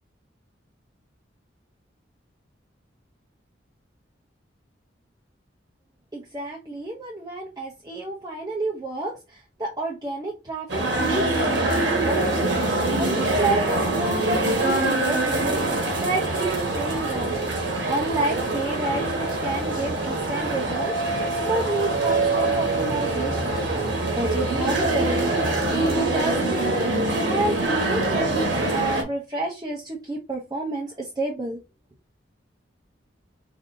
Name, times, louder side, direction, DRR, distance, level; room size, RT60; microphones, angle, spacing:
voice 1, 6.1-17.4 17.9-23.7 24.1-25.3 25.7-26.9 27.3-31.6, right 2 dB, 20° right, -2 dB, 0.6 m, -30 dB
sound 1, 10.7-29.0, right 2 dB, 70° right, 1.2 m, -24 dB
5.1 x 2.6 x 2.6 m, 0.28 s
head